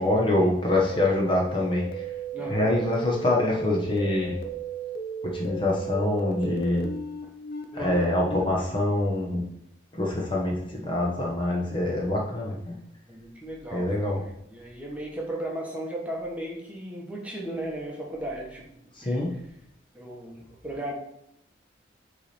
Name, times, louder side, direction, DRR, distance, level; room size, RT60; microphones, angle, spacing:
voice 1, 0.0-2.1 2.5-4.4 5.2-6.9 7.7-9.4 9.9-12.8 13.7-14.2 18.9-19.3, left 1 dB, 25° left, -2 dB, 1.0 m, -25 dB
sound 1, 0.9-8.4, right 2 dB, 50° left, 0.7 m, -35 dB
voice 2, 2.3-2.7 7.7-8.1 13.1-18.7 19.0-19.2 19.9-20.9, right 1 dB, 5° right, -2 dB, 1.1 m, -36 dB
8.1 x 3.3 x 4.3 m, 0.78 s
head